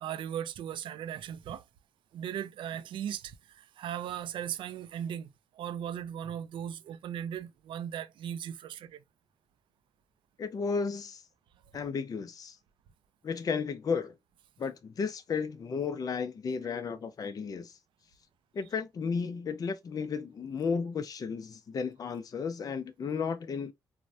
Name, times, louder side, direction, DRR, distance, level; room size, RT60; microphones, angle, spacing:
voice 1, 0.0-1.6 2.1-9.0, right 9 dB, 75° right, 0.4 m, -38 dB
voice 2, 10.4-11.2 11.7-12.6 13.2-14.1 14.6-17.8 18.5-23.7, left 5 dB, 45° left, 0.4 m, -33 dB
3.1 x 2.1 x 2.6 m
supercardioid pair, 60°, 9 cm